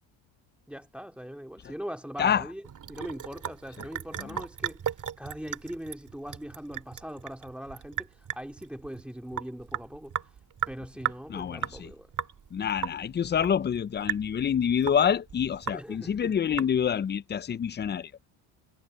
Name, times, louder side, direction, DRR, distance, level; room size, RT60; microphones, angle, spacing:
voice 1, 0.7-2.6 2.9-12.1 15.7-16.3, equal, ahead, 2.4 m, -41 dB
Sink (filling or washing) / Drip, 2.6-17.1, right 9 dB, 40° right, 2.5 m, -37 dB
voice 2, 11.3-11.9 12.5-18.1, left 8 dB, 20° left, 0.5 m, -27 dB
supercardioid pair, 100°, 49 cm